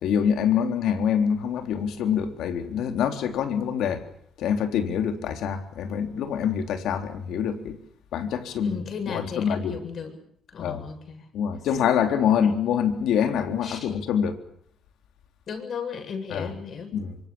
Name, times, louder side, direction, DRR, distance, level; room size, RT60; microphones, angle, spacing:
voice 1, 0.0-4.1 4.4-7.8 8.1-9.8 10.6-10.8 11.3-14.4 16.3-16.5 16.9-17.2, left 8 dB, 80° left, 3.7 m, -25 dB
voice 2, 8.6-10.2 10.5-11.3 13.6-13.9 15.5-16.9, left 6 dB, 60° left, 7.9 m, -35 dB
26.0 x 24.5 x 7.1 m
cardioid pair, 90°, 0 cm